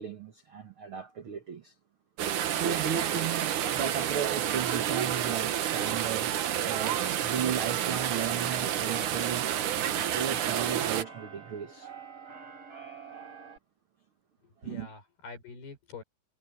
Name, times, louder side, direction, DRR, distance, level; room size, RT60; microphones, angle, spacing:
voice 1, 0.0-1.7 2.6-9.5 10.1-11.9 14.6-15.0, right 8 dB, 85° right, 1.1 m, -35 dB
sound 1, 2.2-11.0, right 10 dB, 60° right, 2.5 m, -29 dB
Keyboard (musical), 7.9-13.6, right 6 dB, 40° right, 5.1 m, -49 dB
voice 2, 14.4-16.0, left 4 dB, 80° left, 8.3 m, -45 dB
omnidirectional pair, 4.4 m